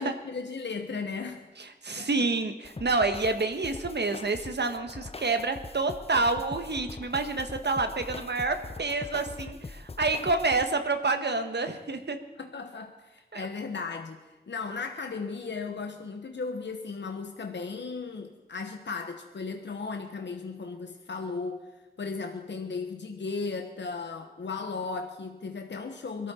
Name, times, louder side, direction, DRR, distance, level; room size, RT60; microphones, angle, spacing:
voice 1, 0.0-1.5 2.0-2.1 12.4-14.2 14.5-21.6 22.0-26.3, left 4 dB, 90° left, 5 dB, 1.0 m, -36 dB
voice 2, 1.8-12.2 13.3-13.5, right 3 dB, 70° right, 7 dB, 1.3 m, -28 dB
sound 1, 2.6-10.6, left 3 dB, 35° left, 0.6 m, -42 dB
22.0 x 13.5 x 4.3 m, 1.1 s
wide cardioid pair, 50°, 18 cm